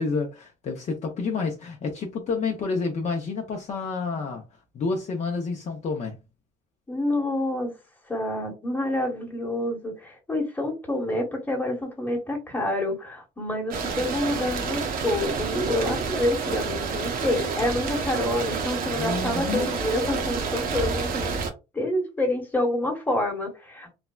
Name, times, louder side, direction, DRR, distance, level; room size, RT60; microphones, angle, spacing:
voice 1, 0.0-4.4 4.7-6.2 18.9-19.8, left 4 dB, 45° left, 0.6 m, -29 dB
voice 2, 6.9-7.7 8.1-21.3 21.7-23.9, left 1 dB, 10° left, 1.2 m, -28 dB
sound 1, 13.7-21.5, right 5 dB, 60° right, 0.8 m, -29 dB
3.3 x 2.1 x 2.3 m
cardioid pair, 110°, 17 cm